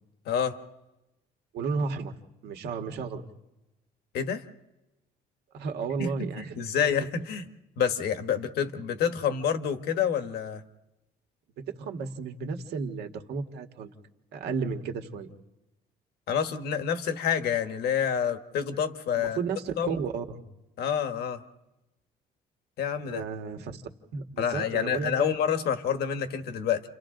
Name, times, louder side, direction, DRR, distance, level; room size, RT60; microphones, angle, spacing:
voice 1, 0.2-0.6 4.1-4.4 6.0-7.5 7.8-10.6 16.3-19.4 19.8-20.0 20.8-21.4 22.8-23.2 24.4-26.8, left 8 dB, 75° left, 8 dB, 1.5 m, -28 dB
voice 2, 1.5-2.1 2.4-3.2 5.5-6.9 11.6-13.9 14.3-15.3 19.1-20.4 23.1-23.8 24.1-25.3, right 5 dB, 75° right, 5 dB, 1.8 m, -33 dB
30.0 x 27.5 x 3.9 m, 0.99 s
cardioid pair, 110°, 17 cm